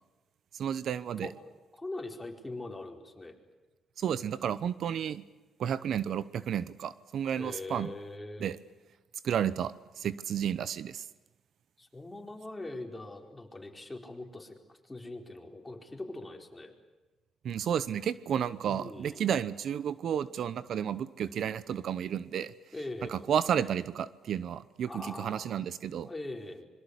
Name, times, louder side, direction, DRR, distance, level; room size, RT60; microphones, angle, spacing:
voice 1, 0.5-1.3 4.0-5.2 5.6-7.9 8.4-8.6 9.2-11.0 17.4-22.5 23.1-26.1, right 9 dB, 65° right, 16 dB, 0.8 m, -32 dB
voice 2, 1.7-3.3 7.4-8.5 11.8-16.7 18.7-19.2 22.7-23.2 24.9-25.6 26.1-26.7, left 2 dB, 15° left, 3 dB, 4.4 m, -42 dB
25.5 x 23.0 x 8.3 m, 1.2 s
cardioid pair, 90°, 0 cm